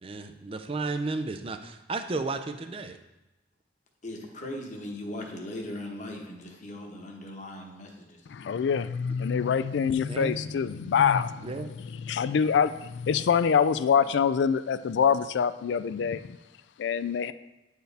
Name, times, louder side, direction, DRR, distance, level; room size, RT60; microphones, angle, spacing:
voice 1, 0.0-3.0 10.1-10.3 11.4-11.7, right 3 dB, 30° right, 7 dB, 0.4 m, -33 dB
voice 2, 4.0-8.2, left 1 dB, 40° left, 1 dB, 1.1 m, -39 dB
voice 3, 8.3-12.7 13.1-16.4 16.8-17.3, left 7 dB, 70° left, 13 dB, 0.3 m, -25 dB
9.2 x 4.6 x 3.4 m, 1.0 s
head